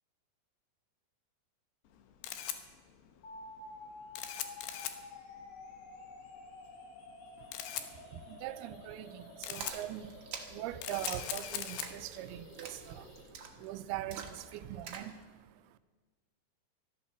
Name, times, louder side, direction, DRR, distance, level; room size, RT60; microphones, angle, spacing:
Camera, 1.9-15.2, left 10 dB, 85° left, 3.1 m, -44 dB
sound 1, 3.2-13.2, left 3 dB, 70° left, 5.4 m, -51 dB
voice 1, 7.4-15.8, right 13 dB, 90° right, 12 dB, 2.6 m, -43 dB
Splash splatter, 9.6-15.2, right 6 dB, 55° right, 1.7 m, -47 dB
14.0 x 12.0 x 7.2 m, 1.5 s
omnidirectional pair, 4.5 m